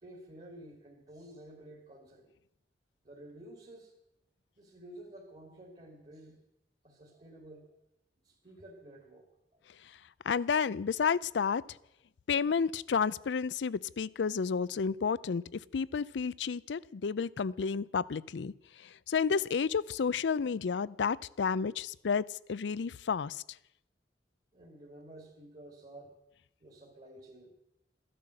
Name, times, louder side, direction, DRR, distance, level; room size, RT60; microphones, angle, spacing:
voice 1, 0.0-2.3 3.0-3.9 4.6-6.4 6.8-7.8 8.2-9.6 24.5-26.2 26.6-27.6, right 1 dB, 35° right, 1 dB, 2.2 m, -52 dB
voice 2, 10.2-11.6 12.3-18.5 18.8-23.4, left 6 dB, 80° left, 20 dB, 0.4 m, -31 dB
14.0 x 11.0 x 7.6 m, 0.81 s
head